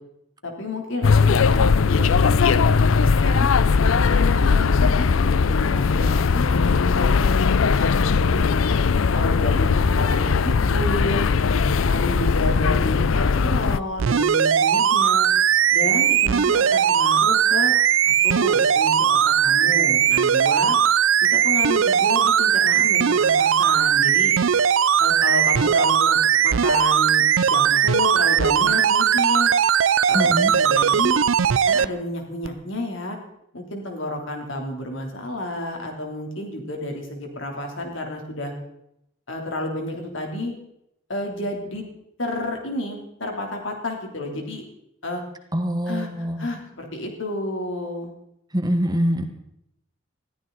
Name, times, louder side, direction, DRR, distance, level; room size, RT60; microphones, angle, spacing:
voice 1, 0.4-3.5 3.9-8.5 9.1-9.7 10.0-11.3 11.8-15.3 15.7-17.7 18.0-20.8 21.3-24.3 25.0-29.5 30.1-31.2 31.6-33.2 33.5-38.5 39.3-40.5 41.1-41.8 42.2-44.6 45.0-45.2 45.9-48.1, left 1 dB, 70° left, 2 dB, 3.4 m, -30 dB
sound 1, 1.0-13.8, left 5 dB, 90° left, 0.5 m, -19 dB
sound 2, 14.0-31.9 32.4-32.5, right 8 dB, 75° right, 0.5 m, -19 dB
voice 2, 30.1-30.5 45.5-46.5 48.5-49.2, equal, 20° right, 7 dB, 1.3 m, -24 dB
21.0 x 14.0 x 4.1 m, 0.78 s
head